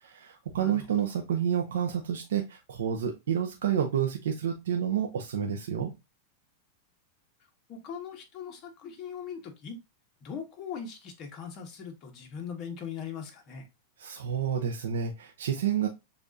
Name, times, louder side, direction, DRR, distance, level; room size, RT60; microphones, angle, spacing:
voice 1, 0.0-5.9 14.0-15.9, right 8 dB, 90° right, 0.7 m, -29 dB
voice 2, 7.7-9.8 10.2-13.6, left 7 dB, 40° left, 1.2 m, -40 dB
6.8 x 2.5 x 2.6 m
supercardioid pair, 135°, 0 cm